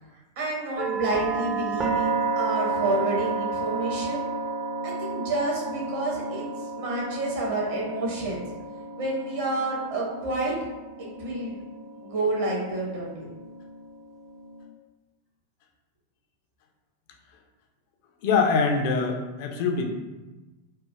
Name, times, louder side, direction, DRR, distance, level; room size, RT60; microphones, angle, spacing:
voice 1, 0.4-4.2 4.8-6.5 6.8-8.4 8.9-10.5 11.0-11.6 12.0-13.3, right 2 dB, 55° right, -3 dB, 0.8 m, -29 dB
sound 1, 0.8-14.6, right 4 dB, 25° right, 0.4 m, -32 dB
voice 2, 18.2-19.9, left 4 dB, 50° left, 3 dB, 0.3 m, -23 dB
3.1 x 2.1 x 2.3 m, 1.2 s
figure-of-eight pair, 90°, 0 cm